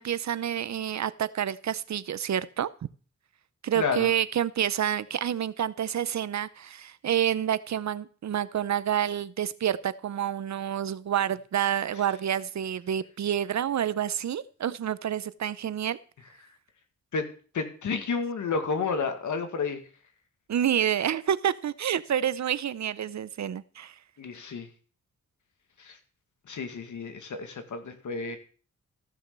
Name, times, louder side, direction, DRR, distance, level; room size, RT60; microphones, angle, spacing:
voice 1, 0.0-2.7 3.6-16.0 20.5-23.9 28.2-28.4, right 10 dB, 65° right, 16 dB, 0.7 m, -28 dB
voice 2, 3.8-4.1 17.1-17.3 17.5-19.8 24.2-24.7 25.8-26.0 26.5-28.4, left 5 dB, 80° left, 7 dB, 2.1 m, -31 dB
15.0 x 6.5 x 6.8 m, 0.40 s
cardioid pair, 90°, 30 cm